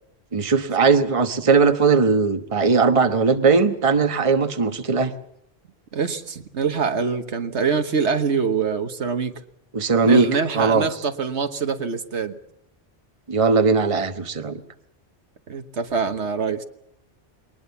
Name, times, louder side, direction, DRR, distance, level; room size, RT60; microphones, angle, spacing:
voice 1, 0.3-5.1 9.7-10.9 13.3-14.6, right 4 dB, 30° right, 8 dB, 1.2 m, -19 dB
voice 2, 5.9-9.4 10.0-12.4 15.5-16.6, right 5 dB, 75° right, 8 dB, 1.5 m, -24 dB
22.0 x 20.0 x 7.0 m, 0.79 s
omnidirectional pair, 1.2 m